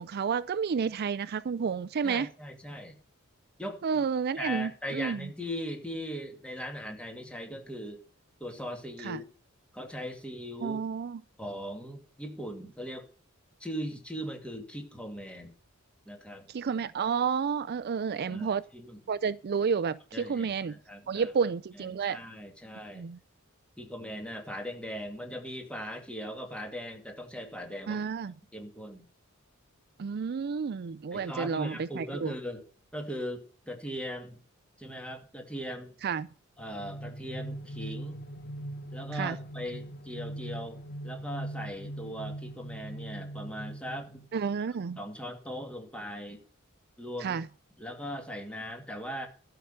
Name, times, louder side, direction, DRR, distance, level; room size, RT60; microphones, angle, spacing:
voice 1, 0.0-2.3 3.8-5.3 9.0-9.2 10.6-11.2 16.5-18.6 19.1-20.7 21.1-22.2 23.0-23.2 27.9-28.3 30.0-32.3 36.0-36.3 39.1-39.4 44.3-45.0 47.2-47.5, right 6 dB, 50° right, 0.4 m, -30 dB
voice 2, 2.0-3.0 3.6-4.0 4.4-8.0 8.4-9.3 9.7-10.8 11.4-13.1 13.6-15.6 16.1-16.5 18.3-19.0 20.1-21.3 21.8-23.0 23.8-28.0 28.5-29.1 31.1-32.7 32.9-34.4 34.8-35.9 36.6-38.2 38.9-44.2 45.0-46.4 47.0-47.4 47.8-49.3, equal, 5° left, 2.3 m, -39 dB
sound 1, 36.6-44.5, right 1 dB, 45° left, 0.9 m, -41 dB
12.5 x 5.8 x 6.6 m
head